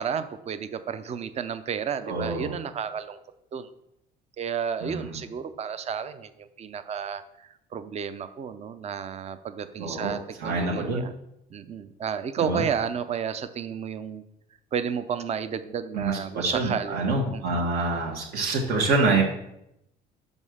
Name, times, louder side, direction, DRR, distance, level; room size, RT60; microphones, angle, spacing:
voice 1, 0.0-3.2 3.5-3.7 4.4-11.1 11.5-14.2 14.7-17.7, right 7 dB, 40° right, 11 dB, 0.6 m, -32 dB
voice 2, 2.1-2.5 4.8-5.2 9.8-11.0 12.4-12.6 15.9-19.2, right 3 dB, 70° right, -2 dB, 1.6 m, -26 dB
5.4 x 5.4 x 6.4 m, 0.80 s
cardioid pair, 110°, 17 cm